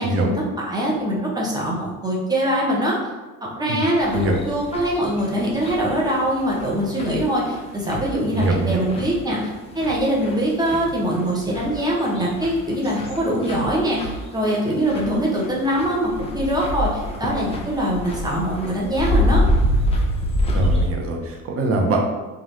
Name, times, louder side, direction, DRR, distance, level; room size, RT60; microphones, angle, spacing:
voice 1, 0.0-3.0 3.4-19.4, equal, 10° right, -4 dB, 0.9 m, -23 dB
sound 1, 4.0-20.9, equal, 15° left, 0.5 m, -26 dB
voice 2, 8.3-8.8 20.5-22.0, right 2 dB, 35° right, 1 dB, 0.7 m, -23 dB
3.0 x 2.5 x 2.7 m, 1.2 s
hypercardioid pair, 65°, 41 cm